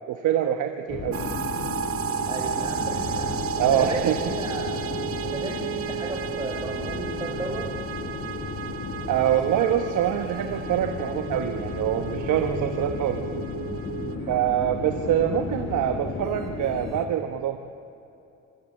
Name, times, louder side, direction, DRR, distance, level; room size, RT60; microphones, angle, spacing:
voice 1, 0.1-1.2 3.6-4.2 9.1-13.2 14.3-17.6, right 10 dB, 80° right, 6 dB, 1.1 m, -25 dB
sound 1, 0.9-17.1, left 5 dB, 60° left, 2.2 m, -34 dB
sound 2, 1.1-14.2, right 9 dB, 50° right, 0.9 m, -33 dB
voice 2, 2.3-3.3 3.7-4.7 5.2-7.7 14.0-14.4, right 2 dB, 15° right, 1 dB, 3.6 m, -34 dB
24.5 x 14.0 x 8.4 m, 2.9 s
cardioid pair, 90°, 30 cm